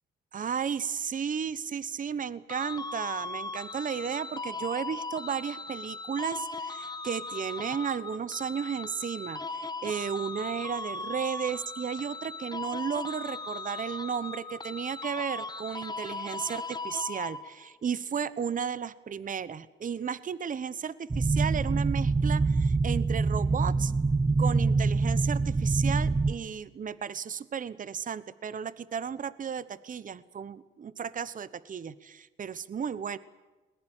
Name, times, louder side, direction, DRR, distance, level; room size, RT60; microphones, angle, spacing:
voice 1, 0.3-23.9 24.4-33.2, right 7 dB, 40° right, 17 dB, 1.2 m, -34 dB
sound 1, 2.5-17.7, left 3 dB, 20° left, 1.5 m, -38 dB
sound 2, 21.1-26.3, right 3 dB, 20° right, 0.9 m, -25 dB
21.5 x 20.0 x 9.0 m, 1.2 s
cardioid pair, 90°, 20 cm